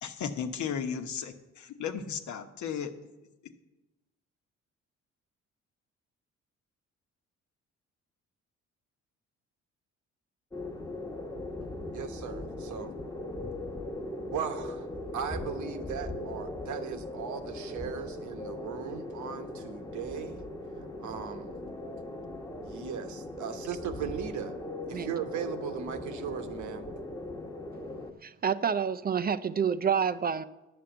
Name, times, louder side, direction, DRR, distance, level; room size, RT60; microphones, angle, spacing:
voice 1, 0.0-2.9, left 7 dB, 70° left, 7 dB, 1.1 m, -35 dB
sound 1, 10.5-28.1, left 1 dB, 10° left, 1.1 m, -39 dB
voice 2, 11.9-12.9 14.3-14.9 15.1-20.4 21.0-21.5 22.6-24.5 24.9-26.9, right 8 dB, 70° right, 7 dB, 1.1 m, -38 dB
voice 3, 28.2-30.4, right 7 dB, 30° right, 13 dB, 0.4 m, -28 dB
10.0 x 6.9 x 7.9 m, 1.0 s
cardioid pair, 90°, 30 cm